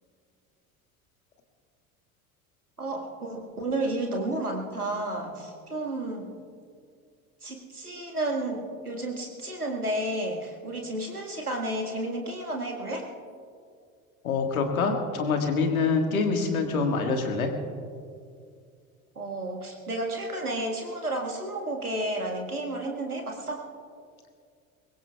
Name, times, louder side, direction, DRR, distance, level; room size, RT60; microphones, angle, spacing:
voice 1, 2.8-6.3 7.4-13.1 19.2-23.7, right 1 dB, 90° right, 1 dB, 1.9 m, -32 dB
voice 2, 14.2-17.5, left 4 dB, 75° left, 4 dB, 1.8 m, -25 dB
23.5 x 21.5 x 2.4 m, 2.2 s
figure-of-eight pair, 65°, 43 cm